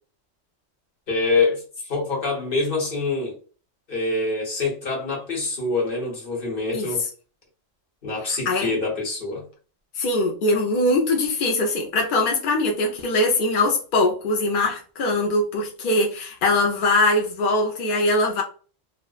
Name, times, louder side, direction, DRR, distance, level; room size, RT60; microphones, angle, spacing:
voice 1, 1.1-3.4 3.9-7.0 8.0-9.4, left 3 dB, 50° left, 1.1 m, -25 dB
voice 2, 8.3-8.8 10.0-18.4, left 2 dB, 65° left, 0.5 m, -22 dB
2.7 x 2.0 x 2.3 m
omnidirectional pair, 1.4 m